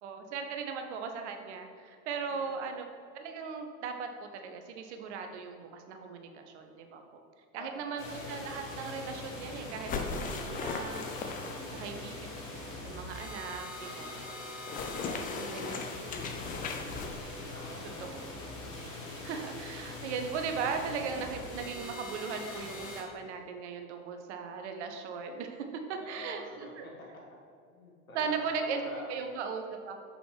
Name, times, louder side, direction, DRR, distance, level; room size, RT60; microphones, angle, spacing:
voice 1, 0.0-2.9 3.1-7.0 7.5-11.1 11.7-12.3 12.8-14.3 15.4-15.6 18.0-18.3 19.2-26.8 28.1-30.0, right 5 dB, 55° right, 5 dB, 0.9 m, -38 dB
voice 2, 2.2-2.6 7.6-8.1 11.5-12.0 14.9-17.1 17.5-18.0 18.8-19.1 25.9-27.1 27.7-29.4, left 1 dB, 80° left, -3 dB, 1.4 m, -49 dB
sound 1, 8.0-23.0, left 2 dB, 65° left, 1.6 m, -42 dB
sound 2, 9.9-11.8 14.6-17.2, left 4 dB, 20° left, 0.5 m, -37 dB
6.5 x 6.0 x 3.3 m, 2.3 s
figure-of-eight pair, 80°, 41 cm